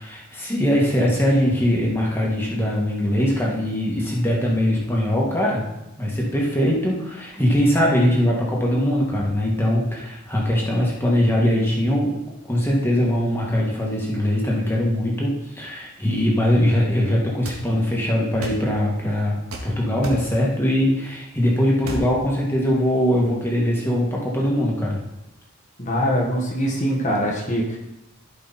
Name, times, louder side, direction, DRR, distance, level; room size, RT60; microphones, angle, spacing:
voice 1, 0.0-5.6 6.0-12.2 12.4-19.4 19.6-25.0, equal, 10° left, -3 dB, 2.1 m, -21 dB
sound 1, 17.4-17.6 18.4-18.6 19.5-19.7 20.0-20.3 21.8-22.1, right 1 dB, 75° right, 2.1 m, -31 dB
voice 2, 25.8-27.8, equal, 35° left, -1 dB, 1.5 m, -23 dB
15.0 x 5.5 x 4.3 m, 0.92 s
head